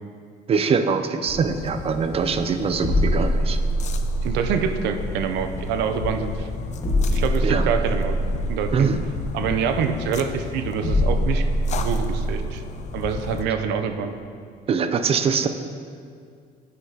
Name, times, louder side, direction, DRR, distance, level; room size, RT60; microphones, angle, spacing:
voice 1, 0.5-3.6 7.4-7.7 8.7-9.0 14.7-15.5, right 6 dB, 35° right, 9 dB, 0.4 m, -23 dB
sound 1, 1.3-13.4, left 5 dB, 45° left, 0.4 m, -33 dB
sound 2, 2.7-12.4, equal, 25° left, 1.4 m, -25 dB
voice 2, 4.2-6.5 7.1-8.2 8.5-8.9 9.3-11.5 11.8-12.6 12.9-14.2, right 6 dB, 85° right, 8 dB, 0.5 m, -26 dB
9.2 x 5.7 x 2.8 m, 2.2 s
cardioid pair, 110°, 17 cm